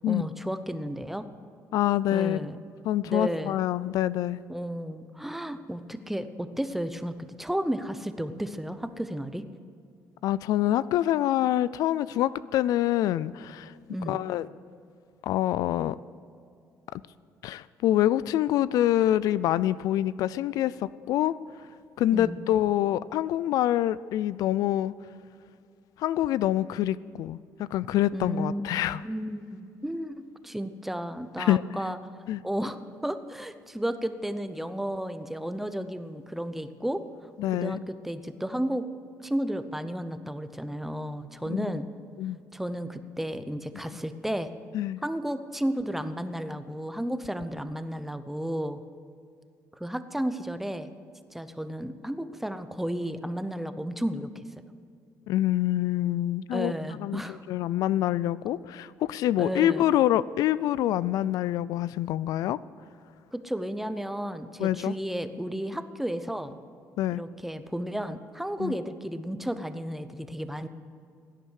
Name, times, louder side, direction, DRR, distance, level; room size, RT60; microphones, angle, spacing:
voice 1, 0.1-1.2 2.1-2.6 3.1-3.7 4.5-9.4 13.9-14.2 22.1-22.4 28.1-28.6 29.0-30.2 30.4-32.0 32.4-37.0 37.5-38.9 39.2-41.8 42.5-44.5 45.0-48.8 49.8-50.9 51.3-54.3 56.5-57.4 59.4-59.8 63.3-66.6 67.1-70.7, equal, 5° right, 10 dB, 0.8 m, -33 dB
voice 2, 1.7-2.4 2.8-4.4 10.2-13.7 14.1-14.5 15.2-16.0 17.4-21.3 22.0-24.9 26.0-29.0 31.4-31.6 32.3-32.4 37.4-37.8 41.5-41.7 42.2-42.4 44.7-45.0 55.3-56.7 57.0-57.2 57.5-62.6 64.6-64.9 67.0-67.2 68.6-68.8, left 13 dB, 75° left, 18 dB, 0.3 m, -26 dB
17.0 x 10.0 x 6.5 m, 2.4 s
cardioid pair, 115°, 6 cm